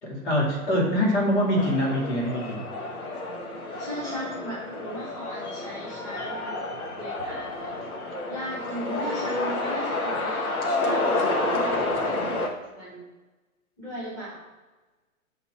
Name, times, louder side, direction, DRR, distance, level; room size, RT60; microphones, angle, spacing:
voice 1, 0.0-2.6, equal, 50° left, -1 dB, 2.3 m, -24 dB
sound 1, 1.5-12.5, left 2 dB, 85° left, 1.7 m, -29 dB
voice 2, 3.8-7.7 8.3-12.4 12.8-13.0 13.8-14.4, equal, 10° left, -8 dB, 1.6 m, -37 dB
7.0 x 4.1 x 4.4 m, 1.2 s
hypercardioid pair, 170°, 43 cm